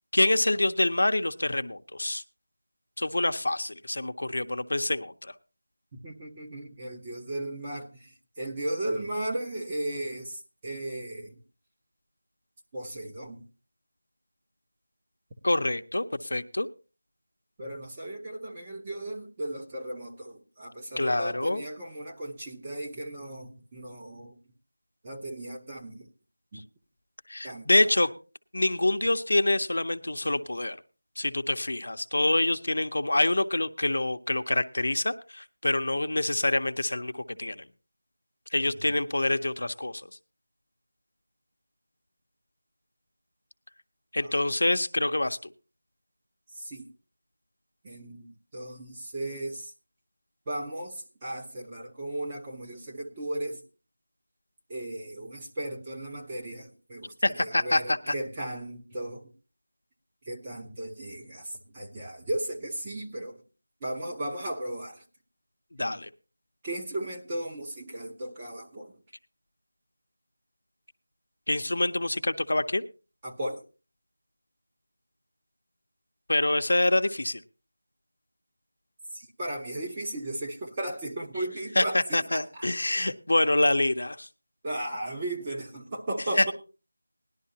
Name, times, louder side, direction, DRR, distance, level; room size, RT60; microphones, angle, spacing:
voice 1, 0.1-2.2 3.0-5.3 15.4-16.7 21.0-21.6 27.3-28.1 28.5-30.8 31.2-37.6 38.5-40.0 44.1-45.4 57.2-58.1 65.8-66.1 71.5-72.8 76.3-77.4 81.8-84.3 86.4-86.5, left 2 dB, 60° left, 8 dB, 0.7 m, -26 dB
voice 2, 5.9-11.4 12.7-13.4 17.6-24.4 25.0-26.1 26.5-26.6 27.4-27.9 38.6-38.9 44.2-44.3 46.5-46.9 47.8-49.7 50.5-53.6 54.7-59.3 60.2-63.4 63.8-65.0 65.8-65.9 66.6-68.9 73.2-73.6 79.1-82.7 84.6-86.5, right 1 dB, 10° right, -2 dB, 0.7 m, -36 dB
18.0 x 11.5 x 2.8 m, 0.32 s
figure-of-eight pair, 180°, 0 cm